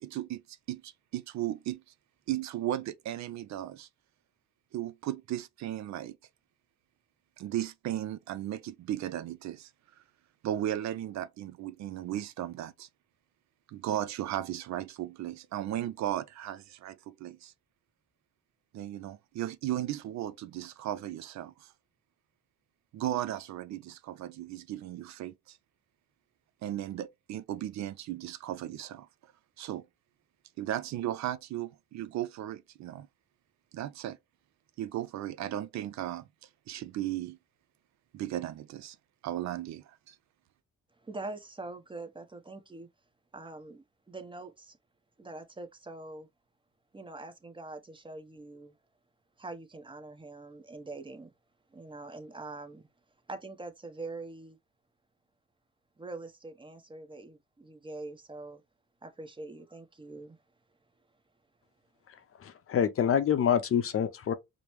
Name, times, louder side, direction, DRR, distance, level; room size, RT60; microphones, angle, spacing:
voice 1, 0.0-1.8 2.3-3.9 4.7-6.2 7.4-9.7 10.0-10.1 10.4-12.9 13.7-17.5 18.7-21.7 22.9-25.6 26.6-29.3 29.6-29.9 30.6-33.1 33.7-34.2 34.8-37.4 38.1-39.0 39.2-40.2, right 12 dB, 65° right, 0.5 m, -36 dB
voice 2, 41.0-42.9 43.3-44.8 45.2-46.3 46.9-48.7 49.4-51.3 51.7-52.9 53.3-54.6 56.0-58.6 59.0-60.4, right 2 dB, 15° right, 0.8 m, -44 dB
voice 3, 62.1-64.3, left 8 dB, 45° left, 0.6 m, -27 dB
5.0 x 2.0 x 3.0 m
cardioid pair, 90°, 30 cm